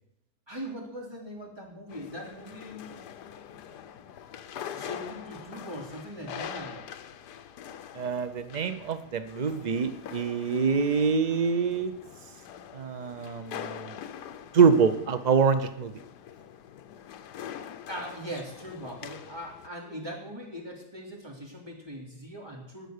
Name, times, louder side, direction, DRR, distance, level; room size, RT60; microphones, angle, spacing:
voice 1, 0.5-2.8 4.7-6.9 13.8-13.9 17.9-22.9, equal, 15° right, -2 dB, 3.3 m, -40 dB
sound 1, 1.9-19.7, left 9 dB, 80° left, 1.4 m, -44 dB
voice 2, 7.9-11.9 12.7-14.0 14.5-15.9, right 5 dB, 80° right, 10 dB, 0.3 m, -25 dB
19.5 x 6.7 x 6.6 m, 0.80 s
omnidirectional pair, 1.7 m